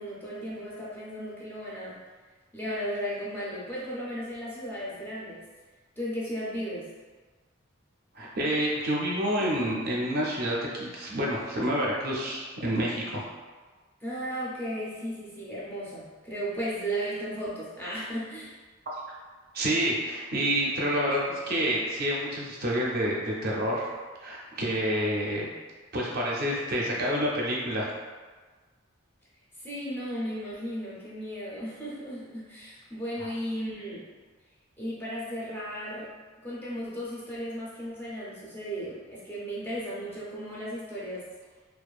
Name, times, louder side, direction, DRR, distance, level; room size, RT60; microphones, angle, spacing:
voice 1, 0.0-2.0 2.5-5.5 6.0-6.9 14.0-18.5 29.6-34.1 34.8-36.1 36.4-41.2, equal, 10° left, -8 dB, 0.4 m, -35 dB
voice 2, 8.1-13.2 19.5-23.9 24.2-25.5 25.9-27.9, equal, 45° right, -4 dB, 0.5 m, -28 dB
2.5 x 2.3 x 2.3 m, 1.4 s
head